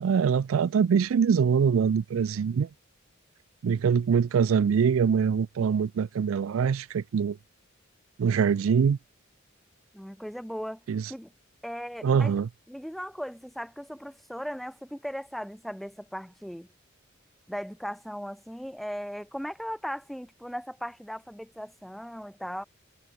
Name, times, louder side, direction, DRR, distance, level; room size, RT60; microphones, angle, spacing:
voice 1, 0.0-2.7 3.6-7.4 8.2-9.0 10.9-11.1 12.0-12.5, right 6 dB, 75° right, 0.4 m, -24 dB
voice 2, 9.9-10.8 11.1-11.3 11.6-12.4 12.7-16.7 17.5-22.6, equal, ahead, 0.7 m, -37 dB
head